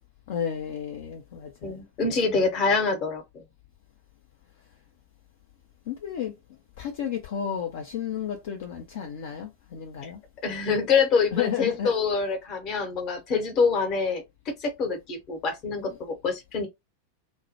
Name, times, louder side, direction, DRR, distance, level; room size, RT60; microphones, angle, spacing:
voice 1, 0.3-1.8 5.9-6.3 6.8-10.2 11.3-11.9, left 8 dB, 55° left, 0.4 m, -32 dB
voice 2, 1.6-3.4 10.0-10.1 10.4-16.7, left 5 dB, 35° left, 0.9 m, -26 dB
2.2 x 2.1 x 2.8 m
figure-of-eight pair, 90°, 0 cm